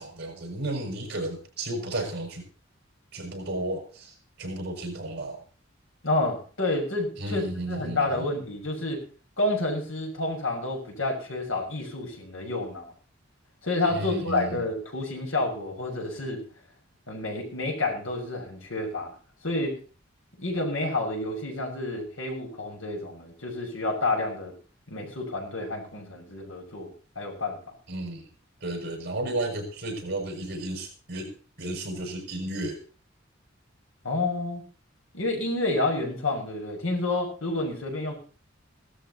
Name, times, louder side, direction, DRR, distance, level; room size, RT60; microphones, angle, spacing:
voice 1, 0.0-2.4 3.1-5.4 7.2-8.3 13.9-14.7 27.9-28.3 28.6-31.3 31.6-32.8, right 1 dB, 55° right, 2 dB, 6.1 m, -33 dB
voice 2, 6.0-9.0 9.4-12.8 13.6-16.4 17.1-19.1 19.4-19.8 20.4-24.5 24.9-27.6 34.0-34.6 35.1-38.1, left 2 dB, 80° left, 1 dB, 6.6 m, -29 dB
17.5 x 13.0 x 4.2 m, 0.39 s
head